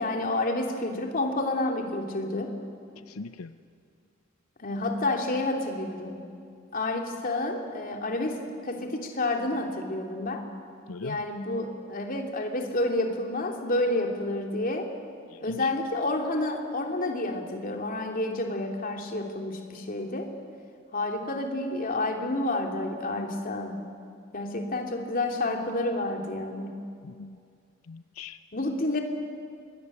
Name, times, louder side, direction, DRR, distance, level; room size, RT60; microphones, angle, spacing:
voice 1, 0.0-2.6 4.6-6.2 6.7-10.4 11.0-14.9 15.4-20.3 20.9-23.8 24.3-26.8 28.5-29.0, left 2 dB, 40° left, 2 dB, 3.0 m, -29 dB
voice 2, 3.1-3.6 10.9-11.3 15.3-15.7 27.0-27.4 27.9-28.4, left 4 dB, 90° left, 11 dB, 0.7 m, -40 dB
25.5 x 21.0 x 9.9 m, 2.3 s
head